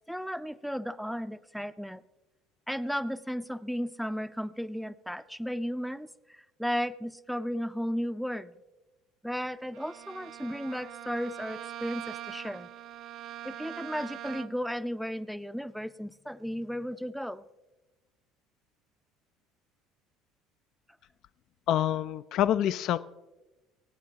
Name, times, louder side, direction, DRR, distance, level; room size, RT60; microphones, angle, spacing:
voice 1, 0.1-2.0 2.7-8.6 9.2-12.7 13.4-17.4, equal, ahead, 12 dB, 0.5 m, -34 dB
Bowed string instrument, 9.7-14.7, right 11 dB, 60° right, 0.5 m, -43 dB
voice 2, 21.7-23.0, left 11 dB, 60° left, 14 dB, 0.3 m, -26 dB
25.0 x 8.6 x 2.8 m, 1.1 s
hypercardioid pair, 80°, 0 cm